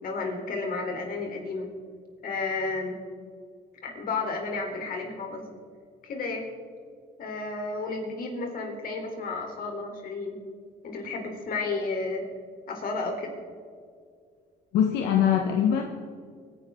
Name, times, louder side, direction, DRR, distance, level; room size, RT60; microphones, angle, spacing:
voice 1, 0.0-1.7 2.2-3.0 3.8-5.4 6.0-6.5 7.2-10.4 10.8-12.2 12.7-13.3, left 3 dB, 60° left, 2 dB, 3.9 m, -32 dB
voice 2, 14.7-15.8, left 9 dB, 90° left, 2 dB, 1.4 m, -22 dB
25.0 x 11.0 x 3.9 m, 2.2 s
cardioid pair, 110°, 17 cm